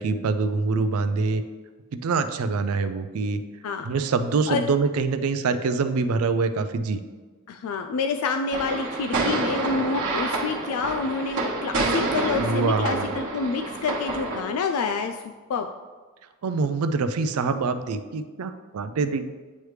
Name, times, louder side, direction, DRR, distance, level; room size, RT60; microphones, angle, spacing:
voice 1, 0.0-1.4 2.0-3.4 3.8-7.0 12.4-13.1 16.4-19.3, right 4 dB, 80° right, 10 dB, 0.4 m, -25 dB
voice 2, 7.5-15.2 15.5-15.7, left 4 dB, 75° left, 6 dB, 0.3 m, -28 dB
sound 1, 8.5-14.4, right 3 dB, 60° right, 1.2 m, -28 dB
9.3 x 3.2 x 3.1 m, 1.4 s
head